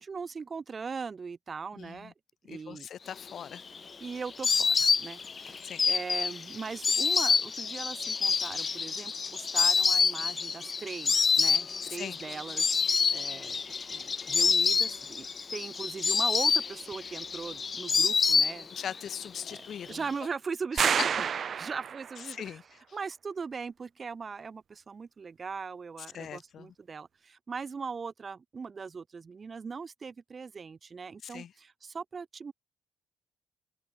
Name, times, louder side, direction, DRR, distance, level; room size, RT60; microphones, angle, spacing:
voice 1, 0.0-2.1 2.5-2.9 4.0-12.8 13.1-18.9 19.5-19.6 19.9-21.3 21.5-22.6 22.9-32.5, right 5 dB, 40° right, 6.7 m, -40 dB
voice 2, 1.8-2.1 2.4-3.6 5.6-5.8 11.8-12.2 18.7-20.0 20.7-20.9 22.2-22.6 26.1-26.7 31.2-31.5, left 9 dB, 60° left, 1.8 m, -41 dB
Insect, 3.3-19.0 19.3-20.1, left 5 dB, 40° left, 0.5 m, -27 dB
sound 1, 20.8-22.3, right 7 dB, 55° right, 1.1 m, -29 dB
open air
cardioid pair, 90°, 0 cm